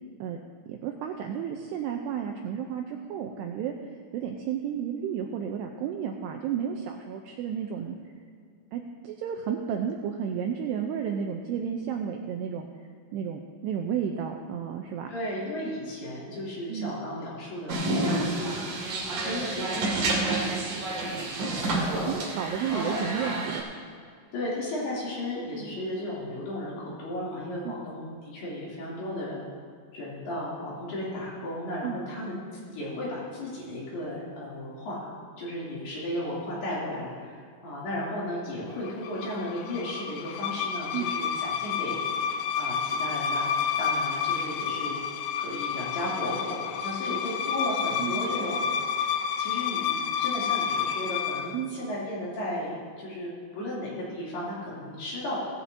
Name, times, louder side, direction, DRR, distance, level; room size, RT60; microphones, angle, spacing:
voice 1, 0.7-3.7 4.1-8.0 8.7-12.7 13.1-15.1 16.7-17.0 21.4-21.5 22.1-23.7 27.7-27.8 31.8-32.0 40.9-41.0 48.0-48.3 51.5-51.7, right 8 dB, 85° right, 3 dB, 2.4 m, -32 dB
voice 2, 15.1-18.6 19.2-22.2 22.7-23.0 24.3-29.4 29.9-32.4 32.7-35.1 35.4-42.0 42.6-43.5 43.8-45.0 45.4-48.6 49.4-55.4, left 1 dB, 60° left, -7 dB, 4.7 m, -35 dB
sound 1, 17.7-23.6, right 2 dB, 50° right, 3.4 m, -29 dB
sound 2, 38.8-51.5, left 7 dB, 90° left, 2.3 m, -30 dB
17.5 x 15.0 x 2.8 m, 2.2 s
omnidirectional pair, 5.6 m